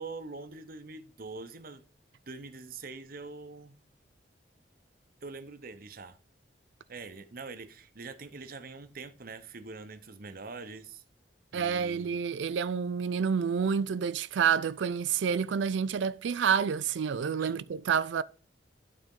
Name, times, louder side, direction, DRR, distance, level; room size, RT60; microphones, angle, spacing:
voice 1, 0.0-1.9 2.3-3.7 5.2-6.2 6.9-11.0 11.5-12.2 17.4-17.6, right 4 dB, 55° right, 0.9 m, -44 dB
voice 2, 11.5-18.2, right 6 dB, 90° right, 0.4 m, -28 dB
11.5 x 4.3 x 3.8 m
head